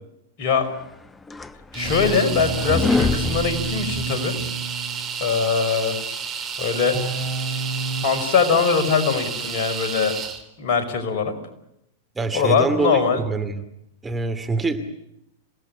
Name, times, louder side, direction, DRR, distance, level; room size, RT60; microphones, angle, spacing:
voice 1, 0.4-0.7 1.7-4.4 5.2-6.0 6.6-7.0 8.0-10.2 10.6-11.4 12.3-13.2, left 5 dB, 50° left, 7 dB, 5.4 m, -21 dB
sound 1, 0.8-4.5, left 3 dB, 15° left, 1.1 m, -26 dB
sound 2, 1.7-5.2 6.9-8.1, right 4 dB, 30° left, 7.3 m, -30 dB
sound 3, 1.7-10.4, right 6 dB, 30° right, 3.9 m, -31 dB
voice 2, 12.2-13.6 14.0-14.8, right 3 dB, 15° right, 6 dB, 2.5 m, -24 dB
27.5 x 18.0 x 9.9 m, 0.80 s
figure-of-eight pair, 100°, 0 cm